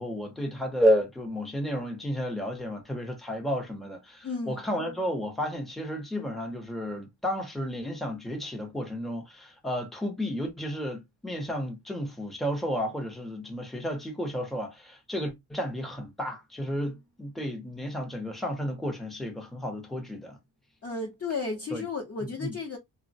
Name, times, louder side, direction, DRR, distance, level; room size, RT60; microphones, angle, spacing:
voice 1, 0.0-20.4 21.7-21.9 22.2-22.6, equal, ahead, 0.5 m, -32 dB
voice 2, 4.2-4.6 20.8-22.8, left 4 dB, 40° left, 0.7 m, -33 dB
3.1 x 2.0 x 2.5 m
wide cardioid pair, 160°, 38 cm